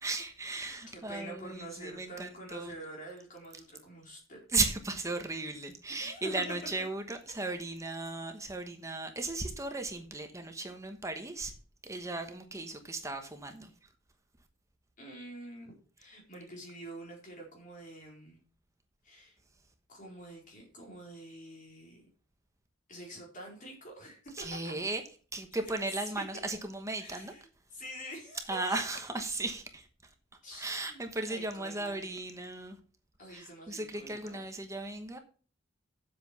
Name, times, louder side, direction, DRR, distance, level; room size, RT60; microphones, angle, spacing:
voice 1, 0.0-2.8 4.5-11.5 11.8-13.7 24.4-25.0 25.3-27.3 28.5-29.9 30.5-32.8 33.3-35.2, right 2 dB, 15° right, 1.1 m, -36 dB
voice 2, 0.9-4.4 5.9-6.3 7.4-7.6 15.0-18.4 19.0-19.4 19.9-22.0 22.9-24.7 26.0-26.2 27.0-28.8 30.4-31.0 31.3-32.1 33.2-34.5, right 1 dB, 40° left, 4.4 m, -47 dB
7.8 x 7.7 x 5.9 m
head